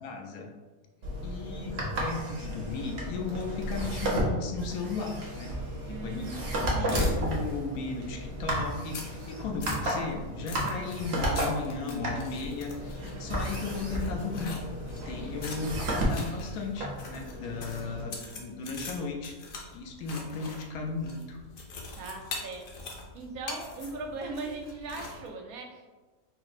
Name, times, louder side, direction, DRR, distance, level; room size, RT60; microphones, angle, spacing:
voice 1, 0.0-0.5 1.2-5.5 5.9-6.3 6.6-14.6 14.9-19.3 19.7-21.4, left 4 dB, 80° left, 3 dB, 1.0 m, -35 dB
sound 1, 1.0-18.0, right 1 dB, 50° right, 1.0 m, -34 dB
sound 2, 3.3-4.0 4.9-6.0 6.7-7.7, left 1 dB, 25° right, 0.5 m, -35 dB
voice 2, 5.9-7.2 21.9-25.9, right 3 dB, 75° right, 2 dB, 1.1 m, -40 dB
sound 3, 8.6-25.3, left 3 dB, 60° left, 0.6 m, -44 dB
4.2 x 2.0 x 4.0 m, 1.2 s
omnidirectional pair, 1.5 m